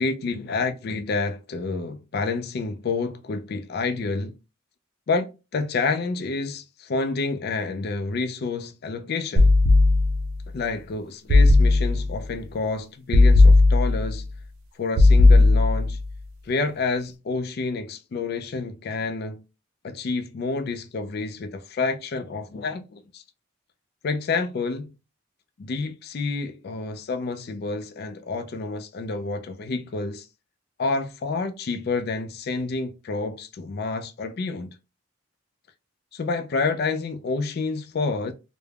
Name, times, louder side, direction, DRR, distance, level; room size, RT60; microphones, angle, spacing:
voice 1, 0.0-4.3 5.1-9.5 10.5-14.3 14.8-16.0 16.4-19.4 19.8-23.2 24.0-24.9 25.6-30.3 30.8-34.7 36.1-38.3, left 4 dB, 45° left, 0.3 m, -29 dB
sound 1, 9.4-10.4 11.3-12.2 13.1-14.2 15.0-16.0, left 2 dB, 75° right, 0.4 m, -16 dB
3.3 x 2.0 x 2.3 m
head